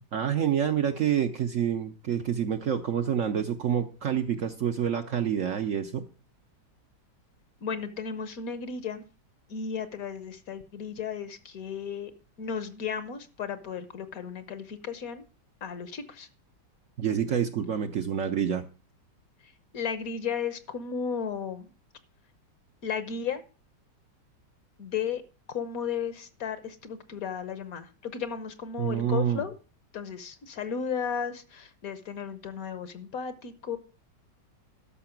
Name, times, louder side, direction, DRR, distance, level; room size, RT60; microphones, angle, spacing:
voice 1, 0.1-6.0 17.0-18.7 28.8-29.4, right 9 dB, 60° right, 7 dB, 0.9 m, -27 dB
voice 2, 7.6-9.0 9.5-12.1 12.4-15.2 15.6-16.3 19.4-21.7 22.8-23.4 24.8-25.2 25.5-29.5 29.9-33.8, left 7 dB, 60° left, 12 dB, 1.3 m, -34 dB
13.0 x 5.8 x 5.8 m, 0.35 s
omnidirectional pair, 1.9 m